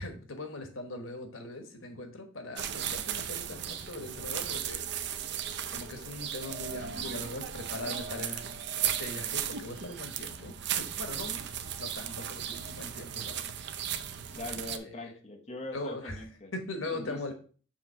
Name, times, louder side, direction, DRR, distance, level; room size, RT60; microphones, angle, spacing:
voice 1, 0.0-5.1 5.7-11.4 11.8-13.5 14.4-14.6 15.0-15.1 15.7-16.2 16.5-17.3, left 2 dB, 90° left, 5 dB, 1.3 m, -41 dB
sound 1, 2.6-14.8, right 9 dB, 60° right, 0.6 m, -36 dB
voice 2, 14.3-16.5 16.9-17.3, left 2 dB, 35° left, 2 dB, 1.0 m, -42 dB
7.1 x 3.0 x 5.7 m, 0.40 s
head